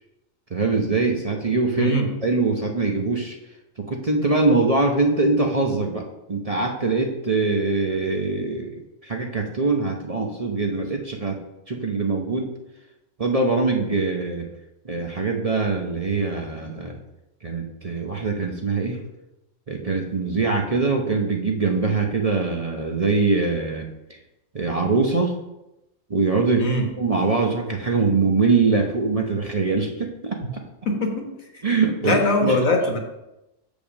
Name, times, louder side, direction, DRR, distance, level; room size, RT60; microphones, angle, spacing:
voice 1, 0.5-1.9 2.2-3.3 3.8-11.4 11.7-12.5 13.2-14.5 14.8-17.0 17.4-19.0 19.7-23.9 24.5-25.3 26.1-26.7 27.0-30.6 31.6-32.6, right 3 dB, 35° right, 1 dB, 0.7 m, -23 dB
voice 2, 32.0-33.0, left 1 dB, 85° left, 2 dB, 1.7 m, -21 dB
7.0 x 5.2 x 6.2 m, 0.93 s
omnidirectional pair, 1.4 m